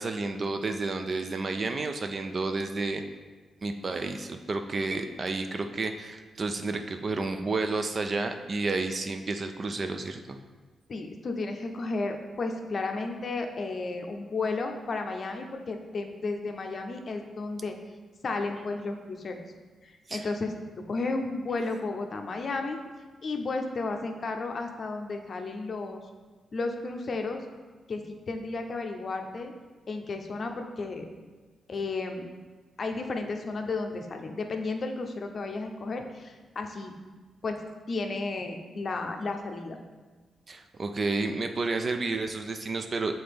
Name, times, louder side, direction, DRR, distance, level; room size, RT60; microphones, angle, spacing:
voice 1, 0.0-3.0 3.6-10.4 20.1-20.3 40.5-43.1, right 3 dB, 35° right, 7 dB, 0.4 m, -31 dB
voice 2, 10.9-17.7 18.2-19.4 19.8-20.5 20.9-22.8 23.2-26.0 26.5-27.5 27.9-29.5 29.9-31.0 31.7-32.3 32.8-36.9 37.4-39.8, left 3 dB, 45° left, 4 dB, 0.6 m, -33 dB
7.6 x 3.9 x 3.4 m, 1.3 s
wide cardioid pair, 130°, 0 cm